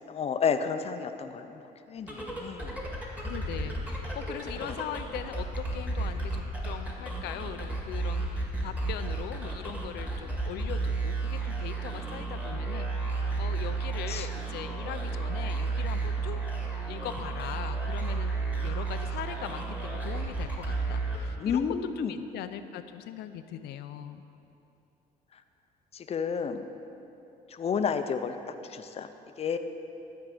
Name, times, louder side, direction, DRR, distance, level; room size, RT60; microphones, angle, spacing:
voice 1, 0.1-1.6 1.9-2.7 4.6-4.7 14.1-14.3 21.4-22.1 25.9-26.6 27.5-28.3 28.7-29.1 29.4-29.6, left 6 dB, 35° left, 8 dB, 0.6 m, -30 dB
sound 1, 2.0-21.7, right 3 dB, 10° right, 1.9 m, -33 dB
voice 2, 3.2-16.6 16.8-21.7 22.0-24.2, left 10 dB, 75° left, 10 dB, 0.6 m, -40 dB
12.5 x 4.7 x 7.8 m, 2.8 s
cardioid pair, 110°, 17 cm